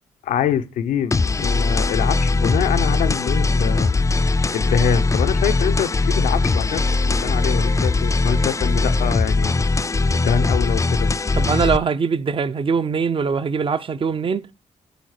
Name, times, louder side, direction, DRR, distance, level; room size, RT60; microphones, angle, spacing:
voice 1, 0.2-3.9 4.5-9.5 10.1-11.1, left 9 dB, 90° left, 0.7 m, -25 dB
sound 1, 1.1-11.8, left 3 dB, 25° left, 0.4 m, -20 dB
voice 2, 11.4-14.5, right 5 dB, 40° right, 0.6 m, -22 dB
8.2 x 3.9 x 6.5 m
cardioid pair, 60°, 13 cm